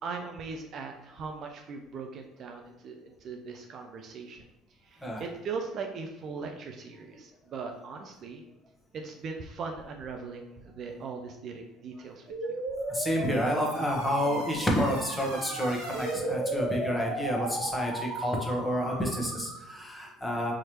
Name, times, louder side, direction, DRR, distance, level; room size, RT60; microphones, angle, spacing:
voice 1, 0.0-4.5 4.8-8.4 8.9-12.6, right 4 dB, 50° right, 3 dB, 0.5 m, -39 dB
sound 1, 12.3-19.8, right 1 dB, 75° right, 1.4 m, -35 dB
voice 2, 12.9-20.5, equal, 10° left, -1 dB, 1.2 m, -29 dB
4.7 x 3.0 x 2.9 m, 0.94 s
hypercardioid pair, 60°, 0 cm